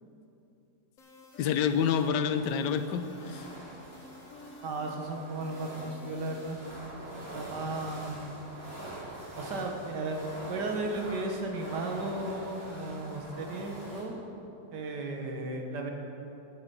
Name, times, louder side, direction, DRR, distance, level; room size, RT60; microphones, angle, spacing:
sound 1, 1.0-6.8, left 1 dB, 55° left, 1.5 m, -51 dB
voice 1, 1.4-3.5, left 7 dB, 80° left, 10 dB, 1.3 m, -28 dB
sound 2, 1.8-14.0, right 1 dB, 55° right, 2.9 m, -44 dB
voice 2, 4.6-6.6 7.3-8.2 9.4-10.2 10.5-14.2 14.7-15.9, right 2 dB, 75° right, 3 dB, 1.9 m, -35 dB
9.8 x 8.7 x 7.1 m, 2.9 s
omnidirectional pair, 1.8 m